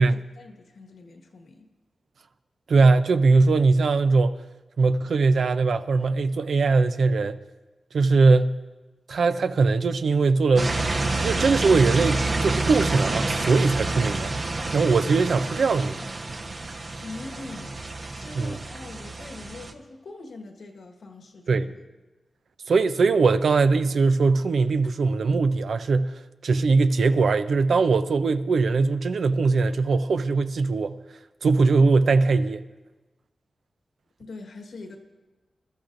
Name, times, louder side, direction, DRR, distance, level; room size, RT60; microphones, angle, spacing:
voice 1, 0.0-1.7 17.0-17.9 18.1-21.8 34.2-35.0, left 3 dB, 80° left, 1.4 m, -42 dB
voice 2, 2.7-4.4 4.8-7.4 7.9-8.6 9.1-10.7 11.2-14.3 14.7-16.0 18.3-18.5 21.5-21.7 22.7-26.1 26.4-31.0 31.4-32.6, right 4 dB, 75° right, 0.6 m, -21 dB
sound 1, 10.6-19.7, right 2 dB, 55° right, 1.0 m, -28 dB
24.0 x 13.0 x 2.6 m
cardioid pair, 55°, 0 cm